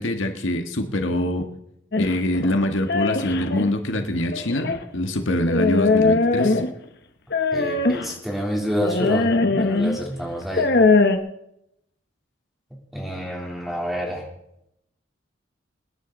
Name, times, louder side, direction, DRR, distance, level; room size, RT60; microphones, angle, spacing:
voice 1, 0.0-1.5 2.0-6.6, left 1 dB, 80° left, 5 dB, 1.7 m, -24 dB
sound 1, 1.9-3.7 4.3-4.8 5.5-6.8 7.3-8.1 8.8-10.0 10.4-11.2, left 3 dB, 55° left, 1.1 m, -20 dB
voice 2, 7.5-10.7 12.9-14.3, equal, ahead, -1 dB, 3.4 m, -28 dB
26.0 x 10.5 x 4.0 m, 0.80 s
head